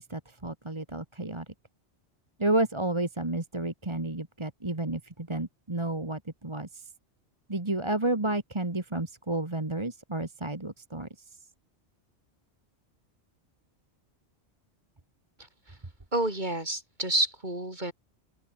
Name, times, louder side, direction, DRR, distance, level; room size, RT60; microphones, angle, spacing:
voice 1, 0.0-1.5 2.4-6.9 7.5-11.1, right 2 dB, 25° right, 1.9 m, -31 dB
voice 2, 16.1-17.9, right 1 dB, 40° right, 5.4 m, -29 dB
open air
omnidirectional pair, 1.1 m